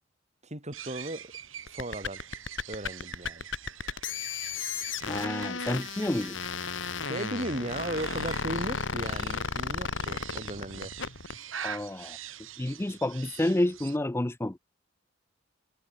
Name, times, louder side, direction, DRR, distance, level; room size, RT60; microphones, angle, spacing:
voice 1, 0.4-1.3 1.7-2.2 2.7-3.5 7.1-10.9, right 1 dB, 35° right, 5.1 m, -36 dB
sound 1, 0.7-14.0, right 8 dB, 80° right, 3.0 m, -45 dB
sound 2, 1.7-11.4, left 5 dB, 65° left, 2.3 m, -34 dB
voice 2, 5.1-6.4 11.6-12.2 12.6-14.6, left 1 dB, 10° left, 0.5 m, -29 dB
head